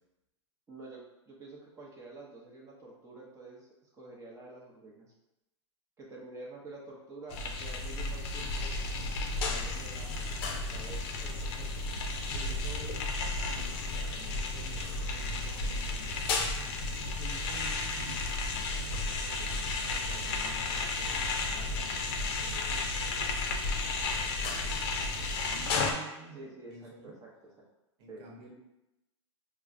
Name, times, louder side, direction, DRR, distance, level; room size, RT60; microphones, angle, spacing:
voice 1, 0.7-3.7 4.0-5.1 6.0-8.7 9.4-11.7 24.2-24.4 26.3-26.7 27.0-27.3 28.1-28.2, right 2 dB, 20° right, -3 dB, 0.8 m, -48 dB
sound 1, 7.3-25.9, left 3 dB, 50° left, 0.6 m, -33 dB
voice 2, 12.3-16.4 16.9-23.3 23.7-27.2 28.0-28.5, right 3 dB, 60° right, -1 dB, 1.0 m, -51 dB
4.4 x 2.1 x 2.5 m, 0.95 s
hypercardioid pair, 115°, 16 cm